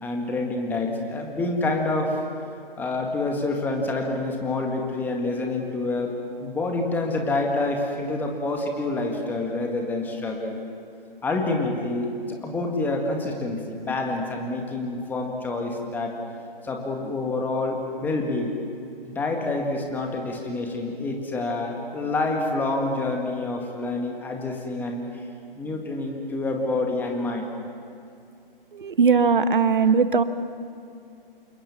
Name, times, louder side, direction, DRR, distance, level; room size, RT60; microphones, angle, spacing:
voice 1, 0.0-2.2 2.8-6.1 6.4-10.6 11.2-16.1 16.6-18.5 19.1-25.1 25.6-27.5, left 2 dB, 5° left, 2 dB, 1.9 m, -27 dB
voice 2, 28.7-30.2, right 5 dB, 60° right, 12 dB, 1.3 m, -19 dB
28.5 x 18.5 x 7.3 m, 2.4 s
figure-of-eight pair, 140°, 29 cm